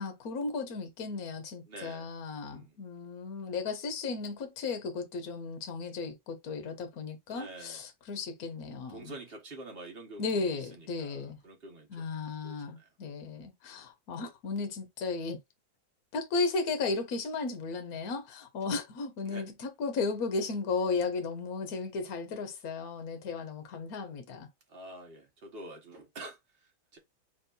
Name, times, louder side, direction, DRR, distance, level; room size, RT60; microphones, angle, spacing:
voice 1, 0.0-9.1 10.2-11.4 11.9-15.4 16.1-24.5, left 4 dB, 55° left, 1.2 m, -35 dB
voice 2, 1.7-2.1 2.5-2.8 7.3-7.8 8.9-12.2 12.4-12.9 19.2-19.5 24.7-27.0, right 2 dB, 35° right, 1.2 m, -47 dB
4.2 x 3.5 x 2.5 m
omnidirectional pair, 2.2 m